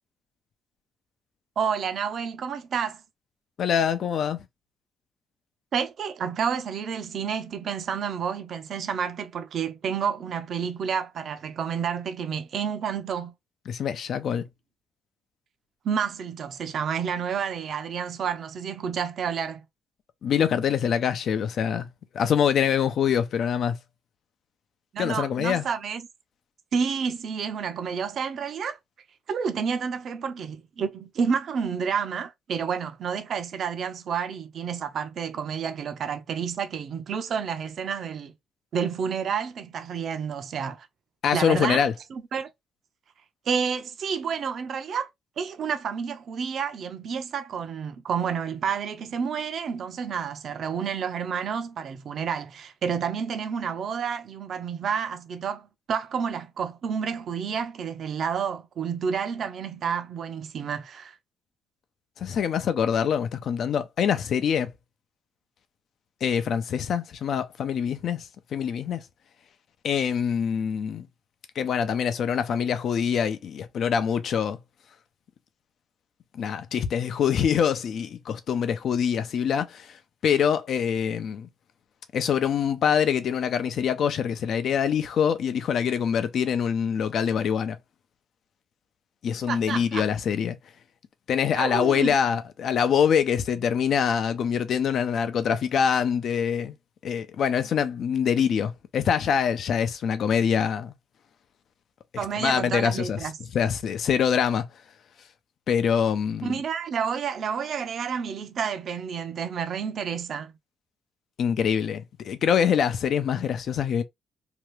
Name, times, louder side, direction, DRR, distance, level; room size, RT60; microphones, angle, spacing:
voice 1, 1.6-3.0 5.7-13.3 15.8-19.6 24.9-26.1 26.7-28.8 29.3-38.3 38.7-40.9 41.3-41.8 42.1-42.5 43.5-45.1 45.4-61.1 89.5-90.0 91.6-92.2 102.2-103.4 106.4-110.5, right 7 dB, 60° right, 0.6 m, -30 dB
voice 2, 3.6-4.5 13.7-14.4 20.2-21.9 22.1-23.8 25.0-25.7 41.2-41.9 62.2-64.7 66.2-69.0 69.8-71.1 71.6-74.6 76.3-81.5 82.1-87.8 89.2-90.6 91.3-96.7 97.0-100.9 102.4-104.7 105.7-106.6 111.4-114.0, left 7 dB, 65° left, 0.5 m, -25 dB
2.9 x 2.4 x 3.2 m
cardioid pair, 90°, 0 cm